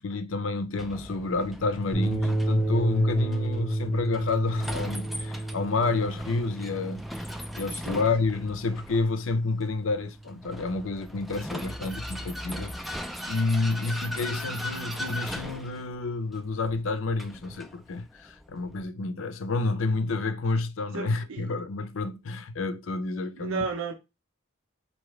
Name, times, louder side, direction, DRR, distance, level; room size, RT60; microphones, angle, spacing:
voice 1, 0.0-7.2 7.5-23.6, left 3 dB, 75° left, 0.6 m, -29 dB
Vehicle, 0.8-18.8, equal, ahead, 0.3 m, -39 dB
sound 1, 1.9-10.4, right 1 dB, 15° left, 0.8 m, -31 dB
voice 2, 7.6-8.0 20.9-21.5 23.4-23.9, right 4 dB, 85° right, 0.6 m, -33 dB
4.7 x 2.8 x 3.2 m
head